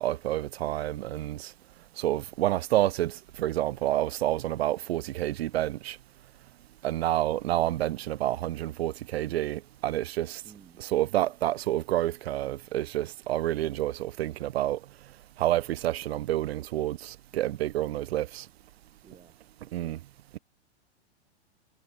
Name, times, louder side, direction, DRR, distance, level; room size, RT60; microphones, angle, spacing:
voice 1, 0.0-1.5 2.0-6.0 6.8-10.4 10.8-14.8 15.4-18.5 19.7-20.0 20.3-20.4, right 14 dB, 60° right, 1.7 m, -29 dB
voice 2, 10.4-10.8 19.0-19.4 19.7-20.0, right 6 dB, 15° right, 6.9 m, -54 dB
hypercardioid pair, 110°, 34 cm